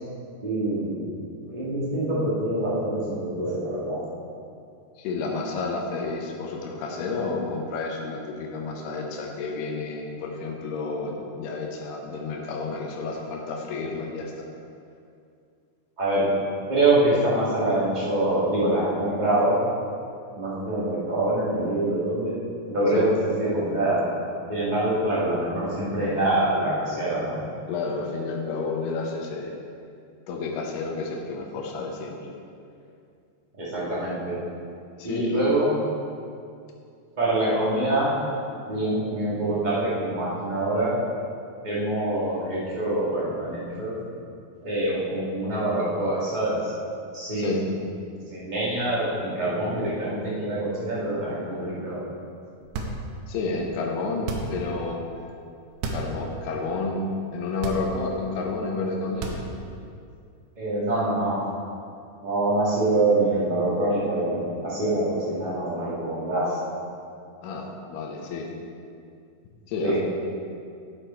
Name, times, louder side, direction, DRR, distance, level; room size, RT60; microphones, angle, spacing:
voice 1, 0.4-1.0 1.4-4.0 16.0-16.3 16.7-19.6 20.4-22.3 22.7-24.1 24.5-27.5 33.6-34.4 35.0-35.7 37.2-38.1 38.7-40.9 41.6-44.0 44.6-46.6 47.1-47.7 48.3-52.0 60.6-61.4 62.2-66.6 69.8-70.0, right 1 dB, 60° right, -8 dB, 0.4 m, -25 dB
voice 2, 5.0-14.4 22.9-23.1 27.7-29.5 30.3-32.3 35.0-35.4 47.4-47.6 53.3-55.0 55.9-57.1 57.3-59.4 67.4-68.5 69.7-70.0, left 3 dB, 90° left, 0 dB, 2.9 m, -30 dB
basketball ext dribble bounce hard surface, 52.6-53.3 54.2-54.7 55.7-56.2 56.6-56.7 57.5-58.2 59.1-59.8, right 3 dB, 80° right, 2.8 m, -32 dB
10.0 x 6.6 x 4.4 m, 2.4 s
omnidirectional pair, 4.5 m